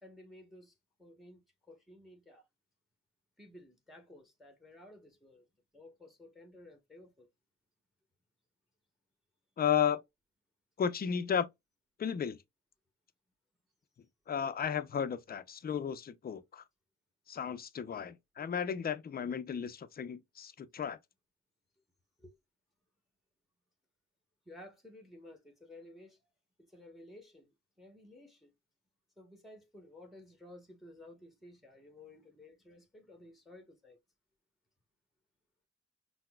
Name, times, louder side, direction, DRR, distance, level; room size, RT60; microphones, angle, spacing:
voice 1, 0.0-2.5 3.4-5.5 5.7-7.3 22.2-22.4 24.5-26.3 26.6-27.5 27.8-28.5 29.2-34.0, left 1 dB, ahead, 0.9 m, -55 dB
voice 2, 9.6-10.0 10.8-11.5 12.0-12.4 14.3-16.6 17.3-21.0, left 8 dB, 30° left, 0.4 m, -34 dB
5.7 x 2.0 x 2.2 m
cardioid pair, 90°, 30 cm